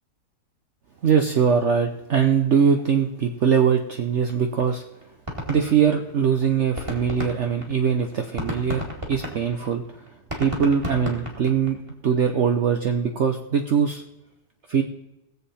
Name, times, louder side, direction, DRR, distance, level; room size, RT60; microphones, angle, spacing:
voice 1, 1.0-4.8 5.5-10.0 10.4-11.8 12.0-14.0 14.7-14.8, right 7 dB, 55° right, 4 dB, 1.0 m, -22 dB
sound 1, 4.3-4.4 4.6-4.7 5.0-6.3 6.6-11.9, equal, 20° right, 2.0 m, -33 dB
20.0 x 7.5 x 4.2 m, 0.92 s
omnidirectional pair, 1.7 m